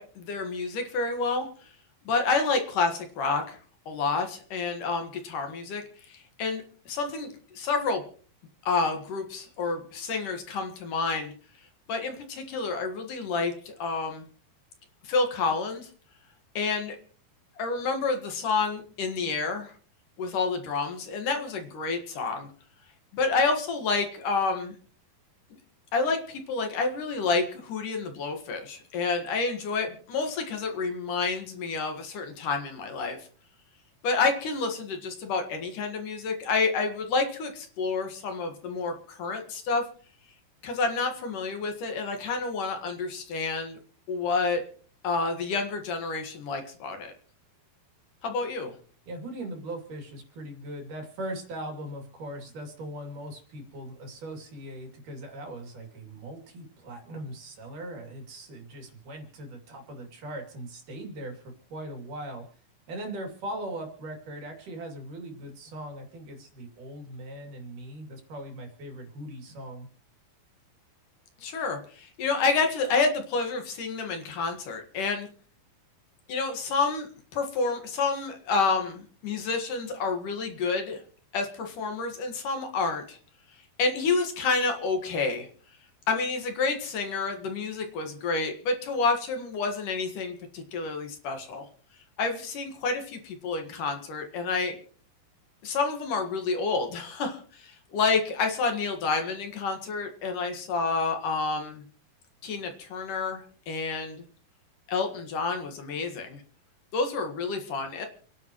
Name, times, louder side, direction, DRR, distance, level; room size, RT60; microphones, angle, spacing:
voice 1, 0.0-1.7 2.1-3.6 3.9-8.0 8.7-11.3 11.9-14.2 15.0-15.9 16.5-17.0 17.6-19.7 20.2-22.5 23.1-24.7 25.9-33.2 34.0-39.8 40.6-43.8 44.1-44.6 45.0-47.1 48.2-48.7 71.4-75.3 76.3-81.0 81.3-83.2 83.8-85.5 86.1-91.7 92.2-94.8 95.6-101.8 102.4-104.2 104.9-106.4 106.9-108.1, left 4 dB, 60° left, 5 dB, 3.1 m, -29 dB
voice 2, 49.1-62.5 62.9-69.9, right 1 dB, 60° right, 2 dB, 4.2 m, -40 dB
29.0 x 10.5 x 3.1 m, 0.43 s
omnidirectional pair, 4.3 m